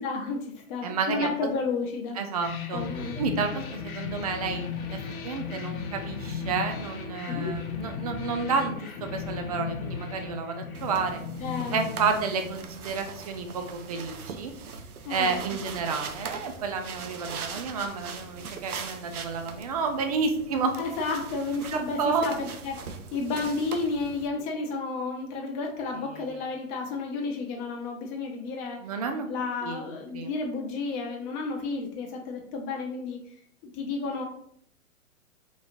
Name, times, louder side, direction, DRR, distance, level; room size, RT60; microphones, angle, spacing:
voice 1, 0.0-2.2 2.7-3.2 7.3-7.5 11.4-11.9 12.2-12.3 15.0-15.6 20.8-28.8 29.3-33.2 33.7-34.2, left 3 dB, 30° left, 0 dB, 1.0 m, -32 dB
voice 2, 0.8-1.3 2.2-2.8 3.2-5.0 5.2-11.2 11.7-14.5 15.1-20.7 21.7-22.3 26.1-26.4 28.8-29.3 29.6-29.9 30.1-30.3, right 5 dB, 30° right, 5 dB, 0.4 m, -30 dB
sound 1, 2.4-12.9, left 6 dB, 70° left, 0.8 m, -36 dB
sound 2, 10.7-24.3, right 5 dB, 90° right, 0.6 m, -41 dB
4.0 x 3.0 x 2.5 m, 0.68 s
hypercardioid pair, 120°, 43 cm